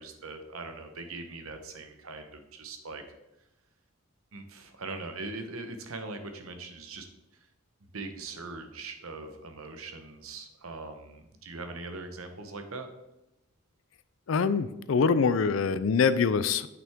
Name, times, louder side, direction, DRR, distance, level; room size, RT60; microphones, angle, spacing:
voice 1, 0.0-3.0 4.3-7.1 7.9-12.9, right 3 dB, 90° right, 6 dB, 1.0 m, -41 dB
voice 2, 14.3-16.7, left 5 dB, 65° left, 14 dB, 0.4 m, -24 dB
8.6 x 5.9 x 3.6 m, 0.94 s
head